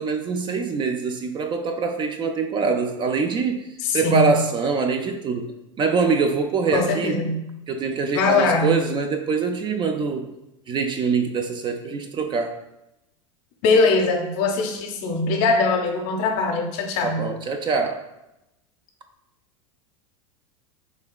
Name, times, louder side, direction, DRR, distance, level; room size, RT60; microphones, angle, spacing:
voice 1, 0.0-3.6 3.9-5.5 5.8-7.2 7.7-10.3 10.7-12.6 17.0-18.0, right 4 dB, 30° right, 5 dB, 0.4 m, -24 dB
voice 2, 3.8-4.4 6.7-7.4 8.1-8.8 13.6-17.3, left 3 dB, 55° left, 3 dB, 0.6 m, -21 dB
3.4 x 3.2 x 2.2 m, 0.89 s
hypercardioid pair, 90°, 17 cm